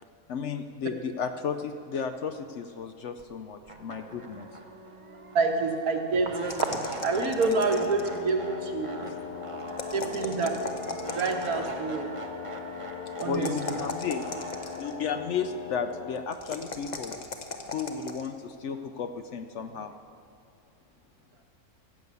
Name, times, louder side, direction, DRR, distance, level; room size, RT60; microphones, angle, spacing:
voice 1, 0.3-4.5 9.0-9.2 9.9-10.0 11.5-11.7 13.2-14.3 14.8-17.2 17.7-19.9, left 6 dB, 65° left, 8 dB, 0.8 m, -33 dB
sound 1, 3.2-3.3 3.7-16.7, right 2 dB, 25° right, 0.8 m, -42 dB
voice 2, 5.4-6.7 7.0-8.9 9.9-10.5 11.1-12.1 13.2-13.5, right 4 dB, 75° right, 4 dB, 1.7 m, -27 dB
sound 2, 6.5-8.3 9.7-11.6 13.2-15.0 16.3-18.3, left 3 dB, 35° left, 0.8 m, -38 dB
Wind instrument woodwind instrument, 7.0-16.4, left 9 dB, 85° left, 1.2 m, -41 dB
15.0 x 6.9 x 8.2 m, 2.5 s
omnidirectional pair, 1.6 m